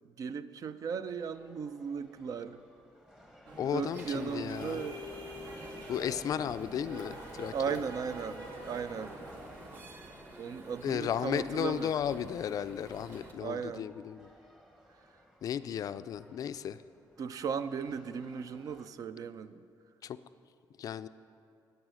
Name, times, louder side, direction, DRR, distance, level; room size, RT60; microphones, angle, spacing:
voice 1, 0.2-2.6 3.7-5.1 7.5-9.2 10.4-11.9 13.4-13.8 17.2-19.6, right 6 dB, 50° right, 13 dB, 0.4 m, -36 dB
sound 1, 1.1-18.9, equal, 5° right, 1.0 m, -60 dB
sound 2, 3.5-9.8, equal, 70° right, 2.3 m, -45 dB
voice 2, 3.6-4.8 5.9-7.5 10.8-14.3 15.4-16.8 20.0-20.2 20.8-21.1, left 9 dB, 50° left, 13 dB, 0.3 m, -34 dB
sound 3, 3.9-13.3, right 1 dB, 30° right, 1.3 m, -51 dB
14.5 x 9.0 x 6.2 m, 2.5 s
cardioid pair, 160°, 8 cm